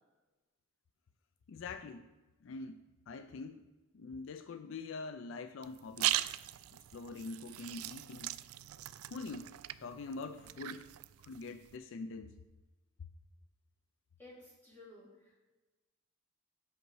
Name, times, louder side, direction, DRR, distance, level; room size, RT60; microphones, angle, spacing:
voice 1, 1.5-2.1 2.4-3.7 3.9-6.1 6.9-8.3 9.1-9.6 9.8-10.9 11.2-12.3, left 3 dB, 60° left, 9 dB, 0.4 m, -44 dB
sound 1, 5.6-11.8, right 15 dB, 80° right, 0.3 m, -40 dB
voice 2, 14.2-15.4, left 2 dB, 10° left, -7 dB, 2.8 m, -55 dB
8.0 x 6.3 x 4.6 m, 1.2 s
head